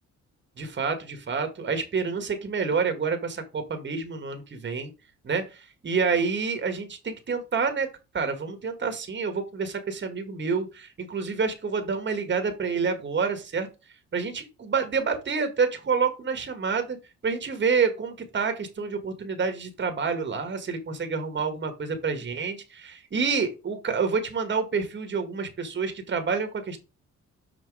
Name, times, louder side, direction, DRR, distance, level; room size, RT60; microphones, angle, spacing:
voice 1, 0.6-4.9 5.2-7.9 8.1-13.7 14.1-17.0 17.2-26.8, right 5 dB, 40° right, 6 dB, 1.6 m, -28 dB
6.0 x 4.4 x 4.8 m, 0.28 s
cardioid pair, 90°, 30 cm